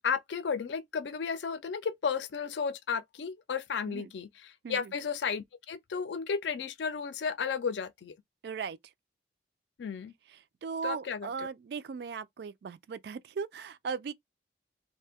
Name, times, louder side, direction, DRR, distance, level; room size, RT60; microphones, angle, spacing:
voice 1, 0.0-8.1 9.8-10.1 10.8-11.5, left 6 dB, 75° left, 0.4 m, -33 dB
voice 2, 8.4-8.8 10.6-14.1, right 5 dB, 60° right, 0.3 m, -37 dB
2.6 x 2.1 x 3.4 m
head